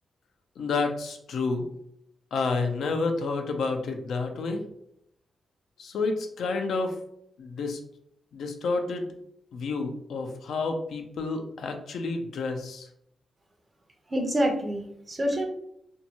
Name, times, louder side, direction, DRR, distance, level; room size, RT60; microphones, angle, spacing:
voice 1, 0.6-1.7 2.3-4.6 5.8-7.0 7.4-7.8 8.3-9.1 9.5-12.9, left 3 dB, 80° left, 4 dB, 0.4 m, -29 dB
voice 2, 14.1-15.5, equal, 35° right, 3 dB, 0.7 m, -27 dB
2.6 x 2.2 x 2.8 m, 0.72 s
cardioid pair, 65°, 0 cm